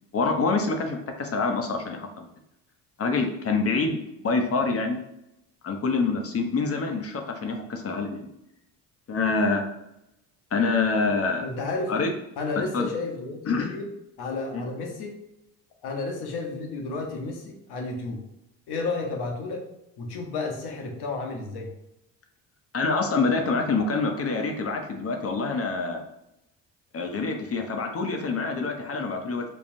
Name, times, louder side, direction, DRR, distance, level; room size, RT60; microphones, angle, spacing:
voice 1, 0.1-2.3 3.0-4.0 4.2-5.0 5.6-8.3 9.1-9.6 10.5-11.4 11.9-12.1 12.7-12.9 13.5-13.7 14.5-14.7 22.7-26.0 26.9-29.4, left 4 dB, 35° left, 4 dB, 0.7 m, -26 dB
voice 2, 11.4-11.9 12.4-13.9 14.2-15.1 15.8-18.2 18.7-19.6 20.0-21.7, left 3 dB, 65° left, 2 dB, 1.0 m, -32 dB
5.3 x 2.3 x 2.6 m, 0.86 s
supercardioid pair, 75°, 41 cm